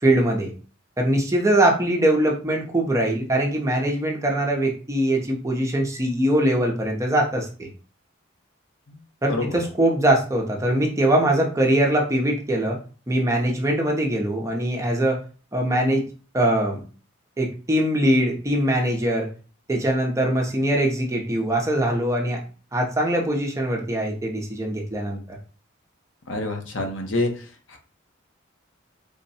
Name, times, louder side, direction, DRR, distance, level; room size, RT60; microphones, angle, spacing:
voice 1, 0.0-0.5 1.0-7.7 9.2-12.8 13.1-15.2 15.5-16.0 16.3-16.8 17.4-19.3 19.7-22.4 22.7-25.4, right 1 dB, 15° right, 0 dB, 0.6 m, -22 dB
voice 2, 9.3-9.6 26.3-27.8, left 2 dB, 65° left, 4 dB, 0.8 m, -27 dB
3.5 x 2.1 x 4.0 m, 0.38 s
head